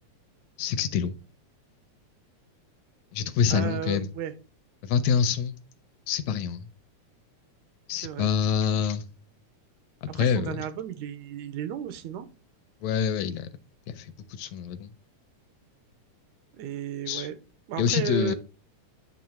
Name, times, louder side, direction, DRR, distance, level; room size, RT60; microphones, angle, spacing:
voice 1, 0.6-1.1 3.1-4.1 4.8-5.6 6.1-6.7 7.9-9.0 10.0-10.6 12.8-13.5 13.9-14.9 17.1-17.3 17.8-18.3, left 7 dB, 75° left, 1.8 m, -26 dB
voice 2, 3.5-4.3 8.0-8.3 10.1-12.3 16.6-17.4 17.7-18.3, right 9 dB, 85° right, 2.2 m, -34 dB
9.2 x 3.2 x 5.7 m
omnidirectional pair, 3.3 m